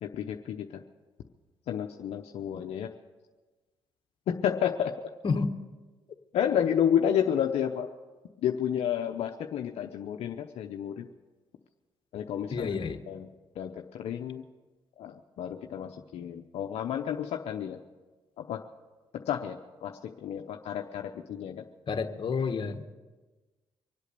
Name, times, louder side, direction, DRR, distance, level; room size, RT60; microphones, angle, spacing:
voice 1, 0.0-0.8 1.7-2.9 4.3-4.9 6.3-7.9 8.4-11.1 12.1-12.8 13.1-13.3 13.6-14.4 15.0-17.8 18.4-18.6 19.3-21.6, left 9 dB, 75° left, 3 dB, 0.8 m, -31 dB
voice 2, 12.5-13.0 21.9-22.9, left 5 dB, 50° left, 6 dB, 1.4 m, -29 dB
24.5 x 8.2 x 6.8 m, 1.3 s
supercardioid pair, 65°, 11 cm